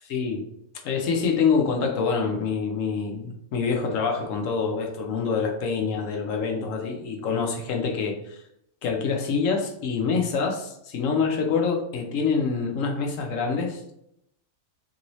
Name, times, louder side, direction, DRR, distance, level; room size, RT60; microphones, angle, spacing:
voice 1, 0.1-0.4 0.8-8.4 8.8-13.9, left 5 dB, 75° left, 2 dB, 1.0 m, -26 dB
3.0 x 2.7 x 2.9 m, 0.77 s
omnidirectional pair, 1.4 m